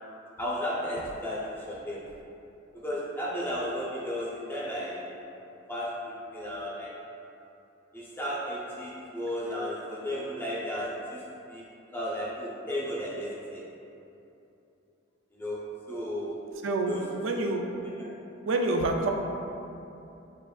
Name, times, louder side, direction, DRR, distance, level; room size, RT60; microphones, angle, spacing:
voice 1, 0.4-2.0 2.7-5.1 5.7-6.9 7.9-11.2 11.5-11.6 11.9-13.6 15.3-16.5 16.9-17.0 17.3-17.7 18.0-18.1, equal, 10° left, -6 dB, 0.6 m, -34 dB
voice 2, 16.6-17.0 17.2-17.6 18.5-19.1, right 2 dB, 75° right, 2 dB, 0.4 m, -27 dB
7.5 x 2.5 x 2.3 m, 2.8 s
head